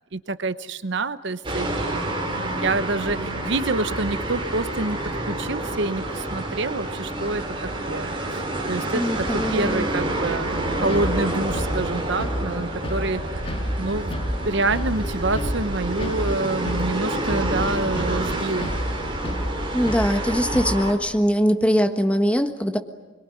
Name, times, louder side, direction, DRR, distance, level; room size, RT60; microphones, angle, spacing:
voice 1, 0.1-2.2 2.6-14.2 14.4-18.7, right 2 dB, 60° right, 12 dB, 0.9 m, -27 dB
sound 1, 1.4-20.9, right 1 dB, 25° right, 3.9 m, -28 dB
voice 2, 8.9-9.9 19.7-22.8, equal, 5° left, 6 dB, 1.4 m, -22 dB
sound 2, 10.9-20.9, equal, 30° left, 1.9 m, -32 dB
25.0 x 22.5 x 9.9 m, 1.2 s
head